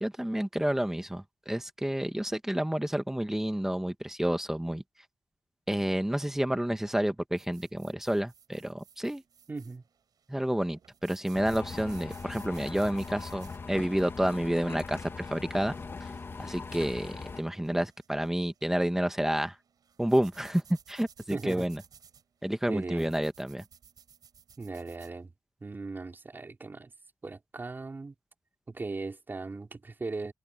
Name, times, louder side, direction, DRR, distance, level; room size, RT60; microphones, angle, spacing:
voice 1, 0.0-4.8 5.7-9.2 10.3-15.7 16.0-16.1 16.4-19.5 20.0-20.6 20.9-21.8 22.4-23.6, right 1 dB, 5° right, 1.4 m, -30 dB
sound 1, 7.4-25.2, right 7 dB, 80° right, 7.9 m, -58 dB
voice 2, 9.5-9.8 21.3-21.7 22.7-23.1 24.6-25.3 25.6-26.9 27.2-28.1 28.7-30.3, right 3 dB, 30° right, 3.7 m, -38 dB
sound 2, 11.3-17.4, left 4 dB, 35° left, 1.0 m, -40 dB
wide cardioid pair, 135°, 6 cm